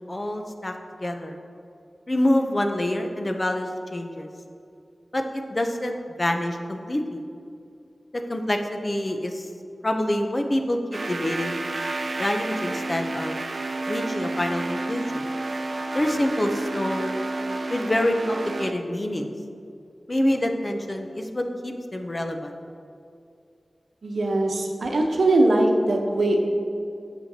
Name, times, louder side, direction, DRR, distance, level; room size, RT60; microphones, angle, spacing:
voice 1, 0.1-0.7 1.0-1.4 2.1-4.3 5.1-7.2 8.1-9.5 9.8-11.6 12.2-13.4 13.9-15.3 15.9-17.3 17.7-19.3 20.1-22.6, left 1 dB, 35° left, 4 dB, 0.6 m, -26 dB
sound 1, 10.9-18.7, right 2 dB, 55° right, 0.4 m, -30 dB
voice 2, 24.0-26.4, right 2 dB, 85° right, 1 dB, 0.8 m, -21 dB
8.7 x 6.9 x 2.8 m, 2.5 s
wide cardioid pair, 75°, 0 cm